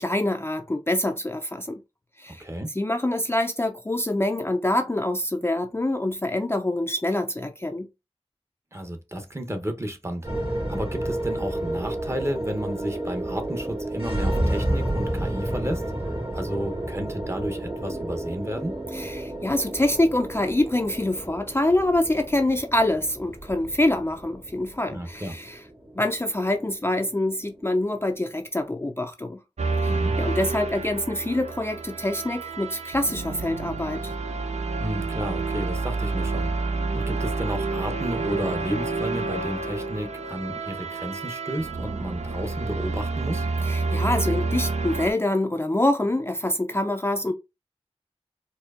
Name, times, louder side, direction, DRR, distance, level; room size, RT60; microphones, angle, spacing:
voice 1, 0.0-1.8 2.2-2.4 2.7-7.9 18.9-25.6 25.9-29.4 29.8-29.9 30.2-34.1 43.6-47.3, left 1 dB, 20° left, 0.4 m, -25 dB
voice 2, 2.3-2.7 8.7-15.8 16.3-18.8 24.9-25.4 29.9-30.2 34.8-36.6 36.9-43.5, equal, 25° right, 0.8 m, -32 dB
sound 1, 10.2-28.6, right 1 dB, 50° right, 2.2 m, -31 dB
sound 2, 29.6-45.1, right 3 dB, 85° right, 0.4 m, -29 dB
4.3 x 2.6 x 2.4 m
wide cardioid pair, 45°, 11 cm